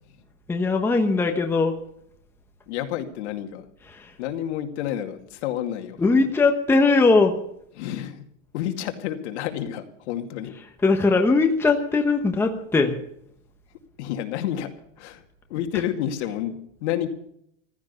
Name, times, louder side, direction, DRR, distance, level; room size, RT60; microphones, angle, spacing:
voice 1, 0.5-1.8 3.9-4.1 6.0-7.3 10.8-12.9, left 3 dB, 5° left, 4 dB, 1.0 m, -20 dB
voice 2, 2.7-3.7 4.2-6.0 7.8-8.2 8.5-10.6 14.0-14.7 15.0-15.2 15.5-17.1, left 11 dB, 60° left, 6 dB, 2.4 m, -29 dB
15.5 x 12.5 x 6.9 m, 0.70 s
supercardioid pair, 155°, 38 cm